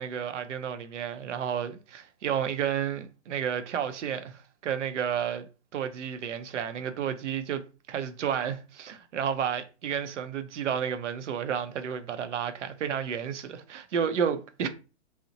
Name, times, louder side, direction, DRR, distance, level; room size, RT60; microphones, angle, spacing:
voice 1, 0.0-5.5 5.7-7.6 7.9-14.7, right 8 dB, 80° right, 0.6 m, -31 dB
2.8 x 2.0 x 2.6 m
hypercardioid pair, 130°, 35 cm